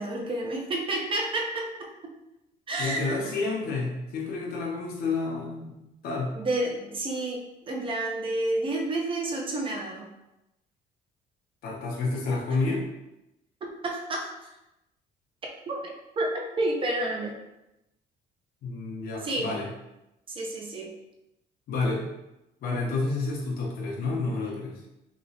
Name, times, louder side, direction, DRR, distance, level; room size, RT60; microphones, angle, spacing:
voice 1, 0.0-1.9 2.7-3.3 6.3-10.1 12.5-12.6 13.6-14.5 15.7-17.4 19.2-19.6 20.3-20.9 24.0-24.1, right 2 dB, 30° right, 0 dB, 0.7 m, -30 dB
voice 2, 2.8-6.3 11.6-12.9 18.6-19.7 21.7-22.1 22.6-24.8, left 3 dB, 60° left, -2 dB, 0.7 m, -30 dB
3.0 x 2.9 x 2.7 m, 0.91 s
cardioid pair, 110°, 17 cm